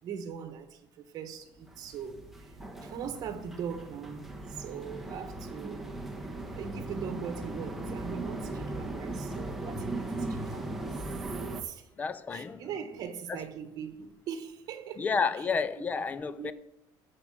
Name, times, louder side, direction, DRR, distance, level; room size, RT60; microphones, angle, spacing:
voice 1, 0.0-5.9 6.6-10.9 11.6-11.9 12.3-15.1 15.8-15.9 16.3-16.5, right 7 dB, 45° right, 1.3 m, -41 dB
sound 1, 1.6-11.6, right 2 dB, ahead, 1.1 m, -38 dB
voice 2, 12.0-12.6 13.3-13.4 15.0-16.5, left 5 dB, 20° left, 0.5 m, -30 dB
14.0 x 4.9 x 7.4 m
cardioid pair, 175°, 9 cm